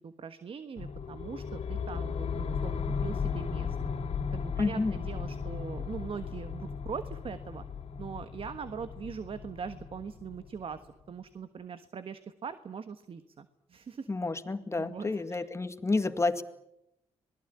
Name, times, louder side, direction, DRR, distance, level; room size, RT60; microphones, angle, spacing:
voice 1, 0.0-3.8 4.3-7.6 8.0-14.1 14.8-15.5, right 6 dB, 55° right, 11 dB, 1.4 m, -41 dB
sound 1, 0.8-10.8, left 6 dB, 70° left, 2.9 m, -36 dB
voice 2, 4.6-5.0 14.1-16.4, left 3 dB, 25° left, 9 dB, 2.1 m, -30 dB
26.5 x 20.0 x 8.9 m, 0.86 s
cardioid pair, 70°, 11 cm